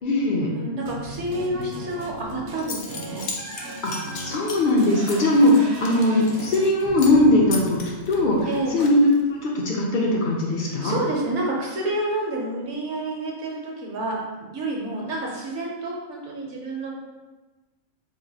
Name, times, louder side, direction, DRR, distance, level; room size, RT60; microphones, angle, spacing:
voice 1, 0.0-0.5 1.5-1.7 3.8-3.9 4.2-7.8 8.1-8.4 8.7-11.0, left 1 dB, 60° left, -2 dB, 0.5 m, -20 dB
voice 2, 0.5-3.3 8.5-8.8 10.6-17.0, right 2 dB, 65° right, -2 dB, 0.9 m, -29 dB
sound 1, 0.9-9.1, right 2 dB, 90° right, 0.3 m, -38 dB
Zipper (clothing) / Coin (dropping), 2.2-2.3 2.6-6.7 7.0-7.2 7.5-9.3, left 4 dB, 90° left, 1.1 m, -36 dB
3.0 x 2.5 x 4.0 m, 1.2 s
omnidirectional pair, 1.4 m